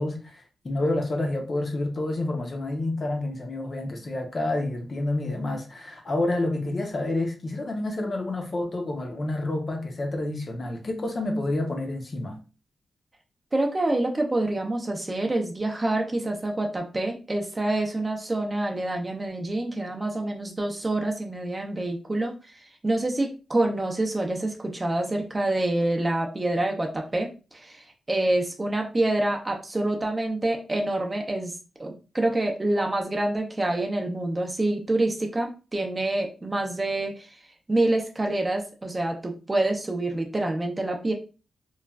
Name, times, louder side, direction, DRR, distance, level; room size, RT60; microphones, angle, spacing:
voice 1, 0.0-12.4, left 2 dB, 40° left, 0.6 m, -29 dB
voice 2, 13.5-22.3 22.8-31.5 31.8-37.4 37.7-41.1, right 2 dB, 25° right, 0.5 m, -27 dB
3.0 x 2.3 x 2.3 m
cardioid pair, 100°, 0 cm